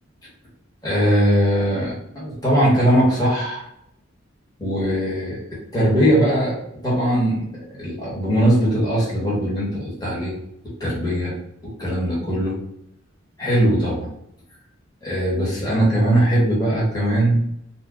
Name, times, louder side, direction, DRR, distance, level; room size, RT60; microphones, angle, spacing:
voice 1, 0.8-3.7 4.6-5.4 5.7-6.6 6.8-7.4 7.8-10.3 10.8-11.3 11.6-12.6 13.4-14.1 15.0-17.4, right 1 dB, 20° left, -6 dB, 1.3 m, -20 dB
2.8 x 2.2 x 3.6 m, 0.75 s
head